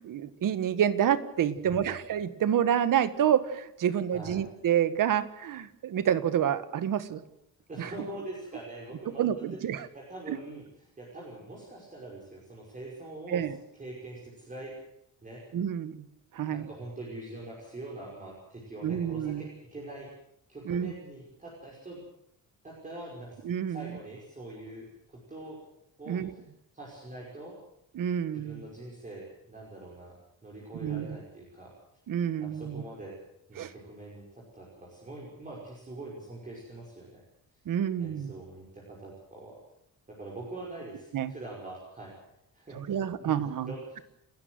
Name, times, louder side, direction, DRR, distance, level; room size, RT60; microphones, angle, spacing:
voice 1, 0.0-7.2 7.8-7.9 9.2-9.9 10.3-10.4 13.3-13.6 15.5-16.0 16.3-16.7 18.8-19.5 20.7-20.9 23.4-23.9 26.1-26.3 28.0-28.6 30.8-31.1 32.1-32.8 33.6-33.7 37.7-38.3 41.1-41.3 42.7-43.7, right 9 dB, 70° right, 13 dB, 1.6 m, -28 dB
voice 2, 1.6-1.9 4.1-4.4 7.7-9.6 9.9-10.7 11.0-13.4 13.7-14.7 15.2-15.4 16.4-20.1 20.5-22.0 22.6-23.4 23.7-25.6 26.0-26.4 26.7-27.5 28.3-30.2 30.4-31.7 32.4-33.2 33.5-37.2 38.0-39.6 40.1-42.2 42.5-44.0, right 2 dB, 20° right, -4 dB, 5.6 m, -44 dB
29.5 x 13.5 x 7.9 m, 0.79 s
wide cardioid pair, 175°, 34 cm